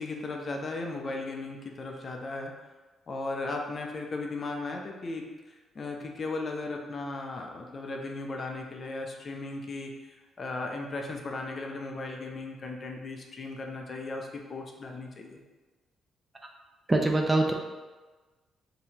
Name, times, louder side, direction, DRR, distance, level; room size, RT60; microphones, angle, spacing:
voice 1, 0.0-2.5 3.1-5.3 5.8-9.9 10.4-15.4, left 3 dB, 40° left, 2 dB, 0.6 m, -36 dB
voice 2, 16.9-17.5, right 2 dB, 20° right, 2 dB, 0.5 m, -23 dB
5.3 x 2.9 x 2.9 m, 1.2 s
cardioid pair, 90°, 0 cm